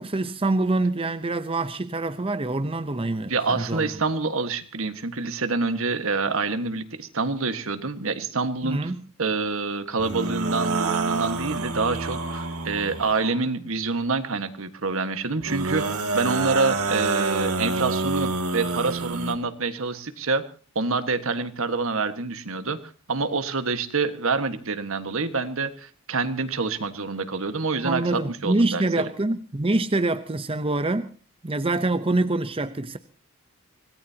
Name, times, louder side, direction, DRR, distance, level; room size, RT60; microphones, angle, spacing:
voice 1, 0.0-3.9 8.6-9.0 27.8-31.1 31.4-33.0, right 2 dB, 25° right, 0.7 m, -25 dB
voice 2, 3.3-8.9 9.2-15.9 16.1-20.4 20.7-28.8, right 3 dB, 65° right, 1.6 m, -27 dB
sound 1, 10.0-13.4 15.4-19.3, right 3 dB, 90° right, 2.2 m, -27 dB
25.5 x 18.0 x 2.9 m
head